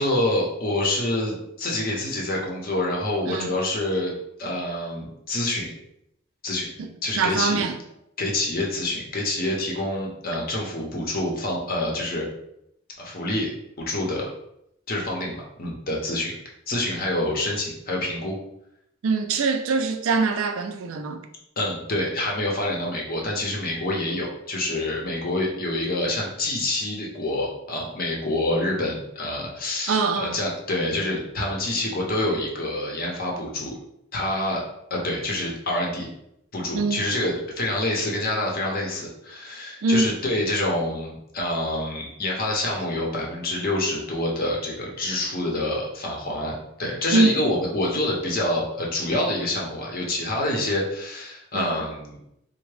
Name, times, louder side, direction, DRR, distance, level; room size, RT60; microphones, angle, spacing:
voice 1, 0.0-4.1 4.4-5.7 6.4-6.7 7.0-7.6 8.2-12.3 13.0-13.5 13.8-14.3 14.9-16.3 16.7-18.4 21.6-33.8 34.1-34.6 34.9-36.1 36.5-52.2, left 1 dB, 45° left, -1 dB, 0.8 m, -27 dB
voice 2, 7.2-7.7 19.0-21.2 29.9-30.4 36.7-37.1 39.8-40.2 47.1-47.3 51.5-51.8, right 3 dB, 85° right, 6 dB, 0.4 m, -23 dB
3.5 x 2.0 x 3.2 m, 0.78 s
head